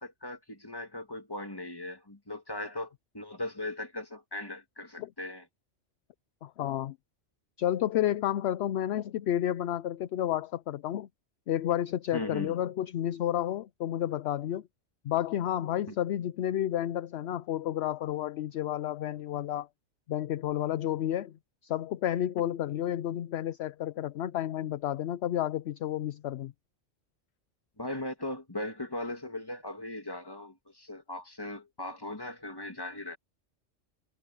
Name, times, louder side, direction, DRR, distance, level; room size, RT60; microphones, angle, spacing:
voice 1, 0.0-5.5 12.1-12.6 15.9-16.0 27.8-33.2, left 1 dB, 20° left, 2.3 m, -38 dB
voice 2, 6.4-7.0 7.6-11.1 11.5-14.6 15.0-19.7 20.1-21.3 21.6-26.5, left 11 dB, 65° left, 0.8 m, -31 dB
omnidirectional pair, 1.3 m